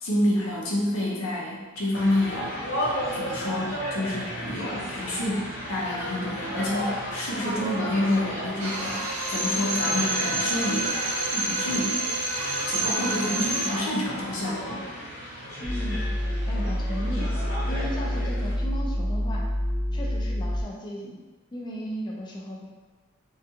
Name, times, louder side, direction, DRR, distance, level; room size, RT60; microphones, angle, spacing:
voice 1, 0.0-2.6 3.1-12.0 12.7-14.9, left 1 dB, 70° left, -4 dB, 0.7 m, -28 dB
sound 1, 1.9-18.5, equal, 85° left, 1.0 m, -34 dB
Drill, 8.6-13.9, right 2 dB, 85° right, 0.6 m, -28 dB
voice 2, 15.6-16.0 16.5-17.3 17.7-19.5 19.9-21.2 21.5-22.7, equal, 20° left, -2 dB, 0.3 m, -35 dB
sound 2, 15.6-20.6, equal, 30° right, 0.8 m, -27 dB
2.4 x 2.3 x 2.7 m, 1.3 s
head